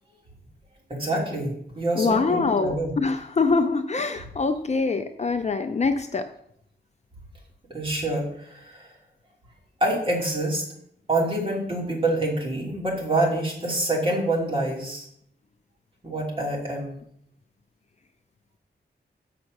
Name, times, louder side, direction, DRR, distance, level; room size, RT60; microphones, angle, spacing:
voice 1, 0.9-2.9 7.7-8.9 9.8-10.6 11.1-15.1 16.0-17.0, right 1 dB, 30° right, -3 dB, 2.9 m, -26 dB
voice 2, 2.0-6.3, left 4 dB, 40° left, 7 dB, 0.6 m, -24 dB
7.1 x 5.9 x 6.5 m, 0.70 s
wide cardioid pair, 150°, 18 cm